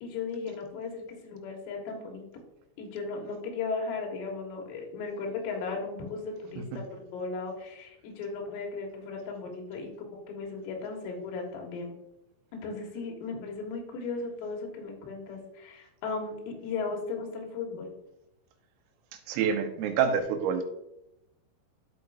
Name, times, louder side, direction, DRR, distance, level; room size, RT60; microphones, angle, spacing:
voice 1, 0.0-2.2 2.8-11.9 12.5-17.9, left 4 dB, 85° left, 1 dB, 4.3 m, -36 dB
voice 2, 19.3-20.6, right 7 dB, 85° right, 5 dB, 3.6 m, -27 dB
12.0 x 6.1 x 2.6 m, 0.86 s
omnidirectional pair, 5.8 m